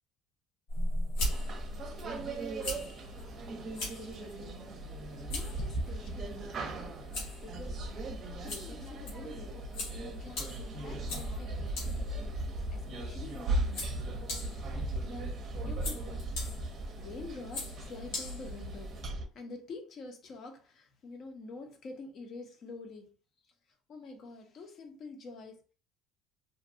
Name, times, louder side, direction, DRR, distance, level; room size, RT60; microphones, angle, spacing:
sound 1, 0.7-19.0, left 1 dB, 85° left, 1.3 m, -41 dB
sound 2, 1.2-19.2, right 2 dB, 40° right, 0.6 m, -38 dB
voice 1, 3.7-6.8 7.2-7.9 8.4-12.4 12.7-14.3 15.0-16.2 17.0-23.2 23.4-23.5 23.9-25.6, left 3 dB, 50° left, 0.7 m, -48 dB
2.6 x 2.2 x 2.6 m
cardioid pair, 115°, 0 cm